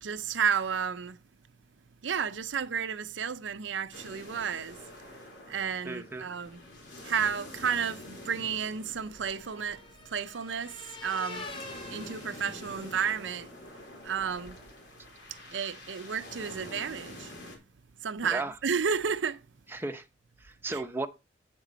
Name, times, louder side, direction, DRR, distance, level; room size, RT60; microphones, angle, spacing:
voice 1, 0.0-1.1 2.0-4.8 5.5-6.6 7.0-9.8 10.1-10.7 11.0-11.5 11.9-13.5 14.0-14.6 15.5-17.3 18.0-19.4 20.7-20.8, right 6 dB, 80° right, 0.6 m, -32 dB
sound 1, 3.9-17.6, left 1 dB, 65° left, 4.0 m, -47 dB
voice 2, 5.8-6.3 18.2-18.6 19.7-20.0 20.4-21.1, right 2 dB, 10° right, 0.8 m, -35 dB
sound 2, 7.9-13.3, left 2 dB, 30° left, 1.4 m, -47 dB
9.2 x 7.4 x 4.0 m
head